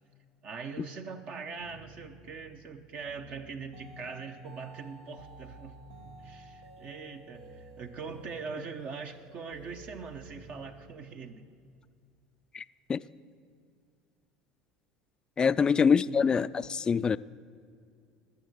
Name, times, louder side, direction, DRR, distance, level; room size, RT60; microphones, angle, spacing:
voice 1, 0.4-5.8 6.2-11.4 15.6-16.2, right 5 dB, 50° right, 6 dB, 0.9 m, -42 dB
sound 1, 1.6-10.9, right 2 dB, 85° right, 1.3 m, -51 dB
voice 2, 15.4-17.2, left 6 dB, 25° left, 16 dB, 0.3 m, -25 dB
20.0 x 7.1 x 6.5 m, 2.3 s
hypercardioid pair, 85°, 3 cm